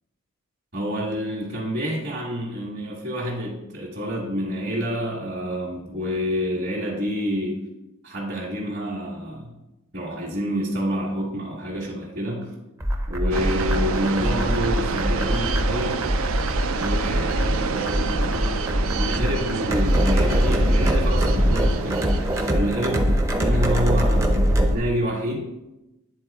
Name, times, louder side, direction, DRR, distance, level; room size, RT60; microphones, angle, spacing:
voice 1, 0.7-7.6 8.0-9.5 9.9-12.5 13.1-16.0 16.7-22.1 22.5-25.4, equal, 45° right, -6 dB, 1.3 m, -28 dB
sound 1, 12.8-24.8, equal, 15° right, 0.6 m, -22 dB
sound 2, 13.3-22.5, right 5 dB, 65° right, 0.4 m, -29 dB
9.5 x 4.2 x 3.4 m, 0.96 s
head